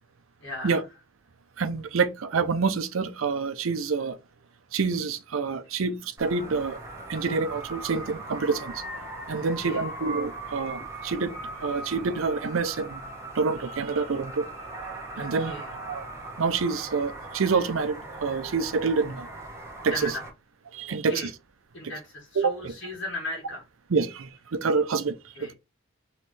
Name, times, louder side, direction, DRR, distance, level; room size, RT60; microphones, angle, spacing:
voice 1, 0.4-0.8 9.3-9.9 15.1-15.7 19.9-20.2 20.9-21.3 21.7-23.6 25.3-25.5, left 1 dB, 55° left, 1.6 m, -37 dB
voice 2, 1.6-4.2 4.7-6.8 7.1-8.8 9.3-13.0 13.3-14.4 15.2-15.5 15.9-16.1 16.4-19.3 19.8-20.1 20.7-21.3 22.4-22.7 23.9-25.2 25.4-25.5, right 4 dB, 75° right, 0.6 m, -27 dB
sound 1, 6.2-20.3, right 2 dB, 15° right, 1.1 m, -39 dB
4.3 x 3.2 x 3.1 m
head